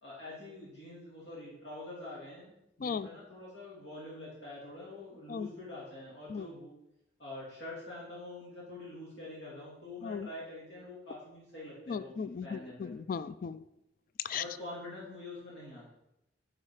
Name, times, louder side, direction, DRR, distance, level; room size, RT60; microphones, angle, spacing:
voice 1, 0.0-6.7 7.2-12.9 14.3-15.9, left 2 dB, 70° left, -7 dB, 2.9 m, -46 dB
voice 2, 11.9-13.6 14.2-14.4, left 6 dB, 50° left, 15 dB, 0.3 m, -36 dB
9.7 x 4.9 x 4.9 m, 0.84 s
head